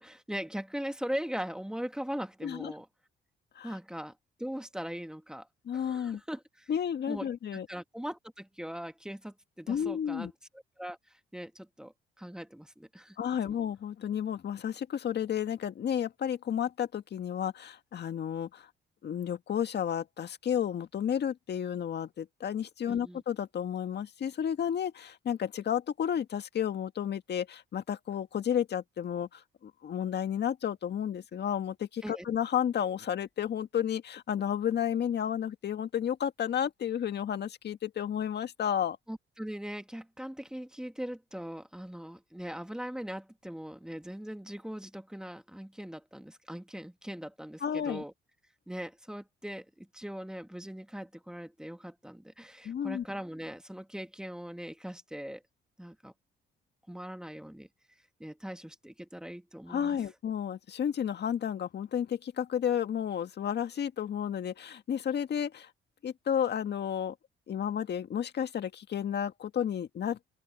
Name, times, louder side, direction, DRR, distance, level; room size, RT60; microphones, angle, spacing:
voice 1, 0.0-2.9 3.6-5.5 5.7-6.7 7.1-10.3 10.8-13.2 13.4-13.6 22.9-23.2 32.0-32.2 39.1-48.1 48.7-55.4 55.8-56.1 56.9-57.7 58.2-60.0, equal, 5° right, 1.6 m, -40 dB
voice 2, 5.7-6.2 6.7-7.7 9.7-10.3 13.2-18.7 19.0-39.0 47.6-48.0 52.6-53.0 59.7-65.7 66.0-67.1 67.5-70.3, left 9 dB, 60° left, 1.9 m, -32 dB
open air
cardioid pair, 90°, 20 cm